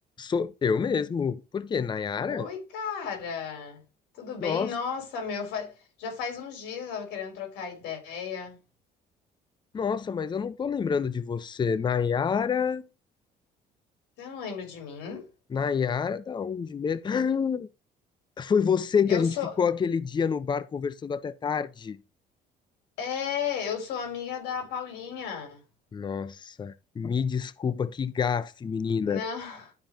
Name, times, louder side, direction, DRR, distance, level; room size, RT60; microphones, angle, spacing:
voice 1, 0.2-2.5 4.4-4.7 9.7-12.9 15.5-17.7 18.4-22.0 25.9-29.2, left 6 dB, 25° left, 0.6 m, -27 dB
voice 2, 2.2-3.8 4.1-8.6 14.2-15.2 19.1-19.5 23.0-25.6 29.0-29.7, left 7 dB, 90° left, 4.2 m, -34 dB
12.0 x 5.1 x 3.0 m
cardioid pair, 110°, 17 cm